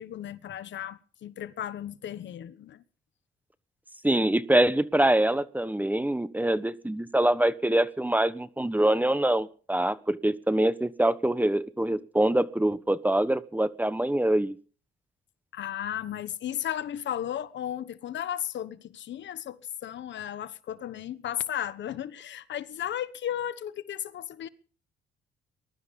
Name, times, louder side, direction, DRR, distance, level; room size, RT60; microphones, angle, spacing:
voice 1, 0.0-2.8 15.5-24.5, left 10 dB, 65° left, 1.2 m, -35 dB
voice 2, 4.0-14.5, right 1 dB, 10° right, 1.3 m, -24 dB
21.0 x 12.5 x 5.4 m
cardioid pair, 90°, 20 cm